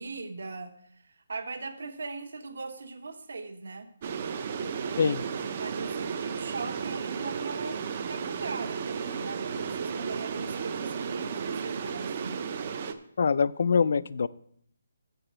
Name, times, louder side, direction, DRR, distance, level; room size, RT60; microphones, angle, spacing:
voice 1, 0.0-3.9 5.6-12.4, right 3 dB, 60° right, 7 dB, 1.0 m, -40 dB
sound 1, 4.0-12.9, right 6 dB, 25° right, 0.4 m, -34 dB
voice 2, 13.2-14.3, left 5 dB, 45° left, 18 dB, 0.3 m, -24 dB
6.8 x 6.6 x 7.4 m, 0.67 s
hypercardioid pair, 180°, 0 cm